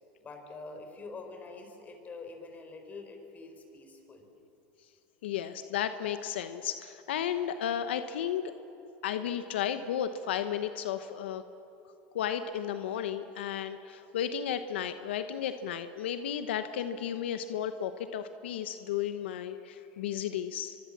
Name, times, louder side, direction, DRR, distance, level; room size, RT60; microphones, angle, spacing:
voice 1, 0.2-4.3, left 3 dB, 30° left, 5 dB, 4.7 m, -45 dB
voice 2, 5.2-8.4 9.0-11.4 12.1-20.8, left 9 dB, 90° left, 10 dB, 1.0 m, -33 dB
24.0 x 24.0 x 7.4 m, 3.0 s
supercardioid pair, 115°, 6 cm